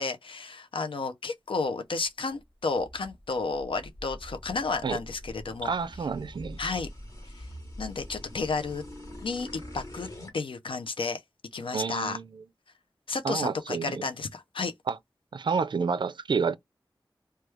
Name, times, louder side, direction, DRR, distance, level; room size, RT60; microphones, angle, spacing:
voice 1, 0.0-5.7 6.6-6.9 7.8-8.8 9.2-10.1 10.3-11.2 11.5-12.2 13.1-14.7, left 4 dB, 85° left, 0.4 m, -32 dB
sound 1, 2.3-10.4, left 1 dB, 40° left, 1.1 m, -44 dB
voice 2, 5.6-6.6 11.7-12.4 13.2-14.0 14.9-15.0 15.3-16.5, right 5 dB, 65° right, 0.3 m, -29 dB
3.0 x 2.2 x 3.3 m
wide cardioid pair, 70°, 9 cm